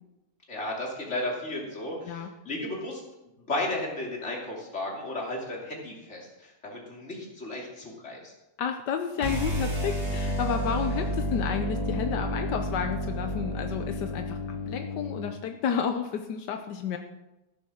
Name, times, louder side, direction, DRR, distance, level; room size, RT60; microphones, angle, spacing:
voice 1, 0.5-3.0 3.4-8.3, left 1 dB, 40° left, -2 dB, 3.3 m, -34 dB
voice 2, 8.6-17.0, left 7 dB, 85° left, 6 dB, 1.5 m, -31 dB
sound 1, 9.2-15.3, equal, 40° right, 3.9 m, -31 dB
15.0 x 7.1 x 6.4 m, 0.98 s
omnidirectional pair, 1.8 m